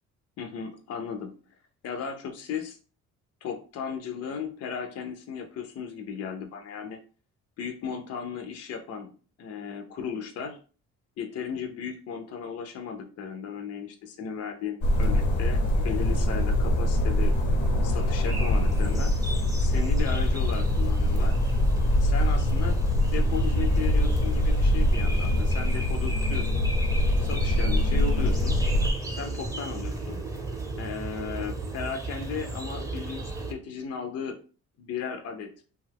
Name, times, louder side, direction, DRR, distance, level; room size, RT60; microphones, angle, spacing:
voice 1, 0.4-1.4 1.8-2.8 3.4-7.0 7.6-10.6 11.2-17.3 17.8-19.2 19.6-21.4 22.0-26.6 27.2-28.6 29.1-30.3 30.8-34.4 34.8-35.5, left 6 dB, 55° left, 5 dB, 0.5 m, -36 dB
sound 1, 14.8-28.9, left 1 dB, 80° left, 0.8 m, -24 dB
sound 2, 18.0-33.5, right 2 dB, 10° right, 0.6 m, -35 dB
2.7 x 2.3 x 3.3 m, 0.38 s
cardioid pair, 90°, 30 cm